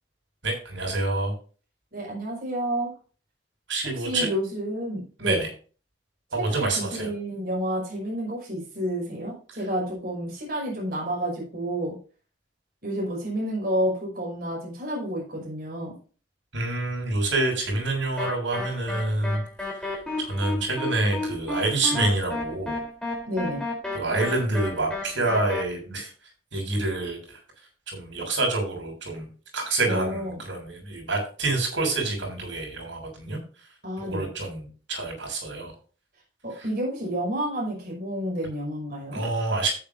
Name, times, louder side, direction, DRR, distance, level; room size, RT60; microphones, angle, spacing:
voice 1, 0.4-1.3 3.7-4.3 5.2-5.5 6.3-7.1 16.5-19.4 19.8-22.8 23.9-26.1 26.5-27.4 27.9-29.3 29.5-33.4 34.0-35.7 36.6-36.7 39.1-39.7, right 2 dB, 85° right, 1 dB, 6.6 m, -27 dB
voice 2, 1.9-2.9 3.9-5.4 6.3-12.0 12.8-15.9 23.3-23.6 29.8-30.4 33.8-34.3 36.4-39.2, equal, 50° right, -3 dB, 5.7 m, -30 dB
sound 1, 18.2-25.6, left 2 dB, 5° left, 3.9 m, -32 dB
13.5 x 9.5 x 2.7 m, 0.38 s
head